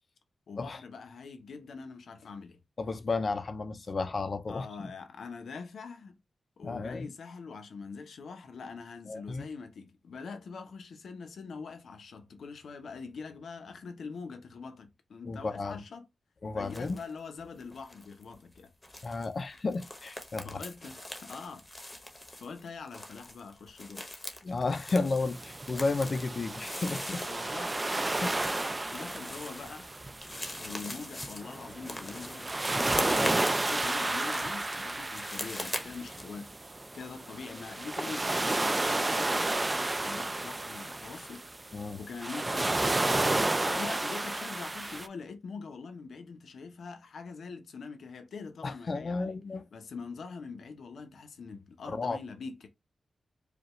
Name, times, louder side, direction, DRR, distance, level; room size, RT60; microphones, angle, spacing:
voice 1, 0.5-2.6 4.5-6.2 6.6-16.1 16.5-18.7 20.4-21.7 22.4-24.0 27.3-27.8 28.7-29.9 30.6-36.5 36.9-41.4 42.0-42.8 43.6-49.4 49.7-52.7, left 5 dB, 80° left, 0.8 m, -43 dB
voice 2, 2.8-4.9 6.6-7.1 9.1-9.5 15.3-15.8 16.4-17.0 19.0-20.6 24.4-27.2 28.2-28.5 41.7-42.0 48.6-49.7 51.9-52.2, left 3 dB, 40° left, 0.5 m, -33 dB
sound 1, 16.7-17.1 17.4-36.2, left 1 dB, 15° left, 0.8 m, -42 dB
sound 2, 25.2-45.1, right 2 dB, 20° right, 0.3 m, -32 dB
4.9 x 2.4 x 3.0 m
wide cardioid pair, 150°, 0 cm